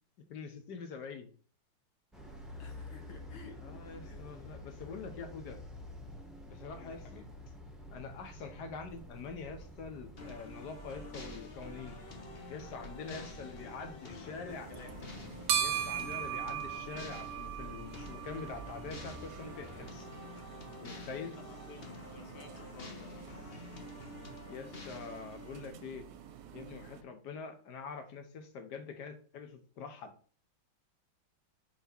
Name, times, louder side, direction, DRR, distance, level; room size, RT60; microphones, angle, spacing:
voice 1, 0.3-1.3 3.6-5.6 6.5-7.2 7.9-12.0 12.5-14.7 15.6-20.1 20.8-21.4 24.5-26.0 26.5-30.1, left 5 dB, 60° left, 1.6 m, -45 dB
sound 1, 2.1-19.9, equal, ahead, 0.7 m, -50 dB
voice 2, 2.6-3.6 4.0-4.4 6.6-7.3 13.1-13.3 13.6-15.0 21.3-23.3, left 5 dB, 80° left, 1.8 m, -54 dB
sound 2, 10.2-25.7, left 3 dB, 40° left, 1.0 m, -49 dB
sound 3, 14.5-27.0, right 9 dB, 70° right, 1.2 m, -41 dB
5.5 x 4.6 x 4.4 m
omnidirectional pair, 2.2 m